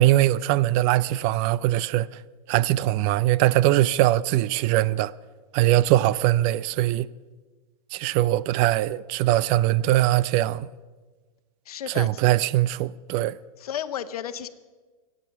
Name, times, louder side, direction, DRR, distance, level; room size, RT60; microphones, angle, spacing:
voice 1, 0.0-2.1 2.5-5.1 5.5-7.1 7.9-10.7 12.0-13.3, right 15 dB, 40° right, 0.4 m, -21 dB
voice 2, 11.7-12.1 13.6-14.5, left 10 dB, 80° left, 1.0 m, -32 dB
24.0 x 9.0 x 6.0 m
hypercardioid pair, 130°, 19 cm